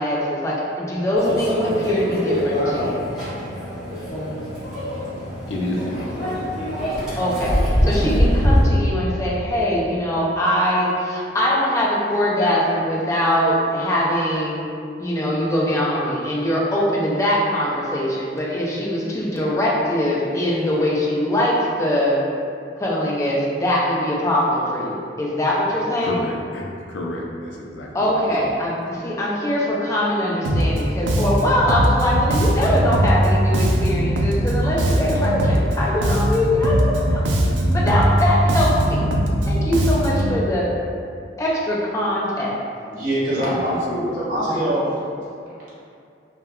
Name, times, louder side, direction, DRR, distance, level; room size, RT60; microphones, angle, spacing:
voice 1, 0.0-3.1 7.2-14.6 15.0-22.2 22.8-26.2 27.9-37.3 37.7-39.1 39.5-40.7 41.4-42.6 44.5-44.7, left 1 dB, 15° left, -5 dB, 0.3 m, -22 dB
Microwave oven, 1.2-8.6, equal, 5° right, 0.9 m, -23 dB
voice 2, 5.5-6.1 26.0-28.3 43.5-44.1, left 1 dB, 85° left, -1 dB, 0.4 m, -30 dB
Bass guitar, 30.4-30.8 31.1-35.7 36.0-40.3, right 1 dB, 80° right, 0.3 m, -20 dB
voice 3, 42.9-44.9, right 1 dB, 45° right, -10 dB, 0.8 m, -23 dB
2.2 x 2.1 x 3.5 m, 2.4 s
head